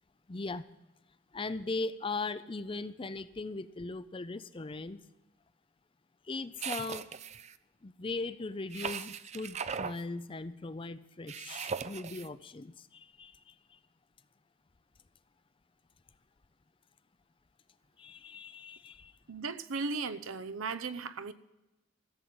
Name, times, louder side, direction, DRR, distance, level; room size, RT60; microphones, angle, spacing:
voice 1, 0.3-0.6 1.3-5.0 6.3-7.0 7.8-13.5 18.0-19.1, left 3 dB, 25° left, 0.5 m, -39 dB
sound 1, 6.6-7.5 8.7-10.0 11.3-12.3, right 6 dB, 35° right, 0.4 m, -38 dB
voice 2, 19.3-21.3, right 4 dB, 80° right, 0.7 m, -36 dB
15.0 x 7.7 x 8.6 m
head